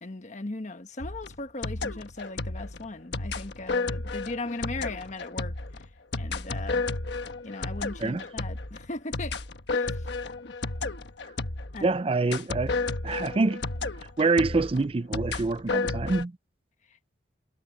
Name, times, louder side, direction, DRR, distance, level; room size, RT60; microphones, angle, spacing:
voice 1, 0.0-5.9 6.1-6.8 7.4-9.4 9.7-10.1 11.7-11.9, left 2 dB, 40° left, 1.3 m, -38 dB
sound 1, 1.0-11.9 12.3-16.2, left 3 dB, 70° left, 1.3 m, -32 dB
voice 2, 11.8-13.6 14.0-16.4, right 3 dB, 30° right, 0.5 m, -26 dB
head